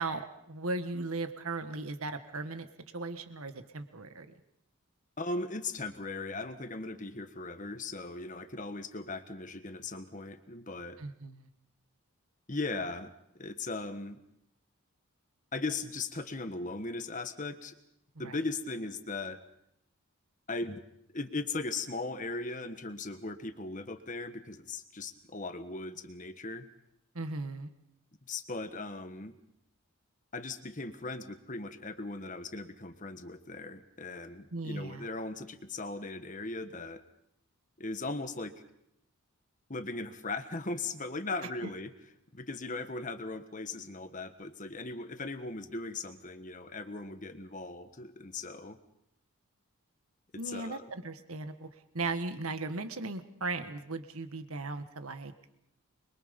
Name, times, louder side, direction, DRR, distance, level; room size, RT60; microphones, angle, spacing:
voice 1, 0.0-2.7 2.9-4.3 11.0-11.5 18.2-18.4 27.1-27.7 34.5-35.1 41.4-41.7 50.4-55.3, right 3 dB, 75° right, 8 dB, 1.7 m, -37 dB
voice 2, 5.2-11.0 12.5-14.2 15.5-17.7 18.2-19.4 20.5-20.8 21.1-26.7 28.3-29.3 30.3-37.0 37.8-38.5 39.7-41.9 42.3-48.8 50.4-50.9, left 3 dB, 35° left, 9 dB, 1.4 m, -38 dB
26.0 x 22.5 x 5.4 m, 0.79 s
head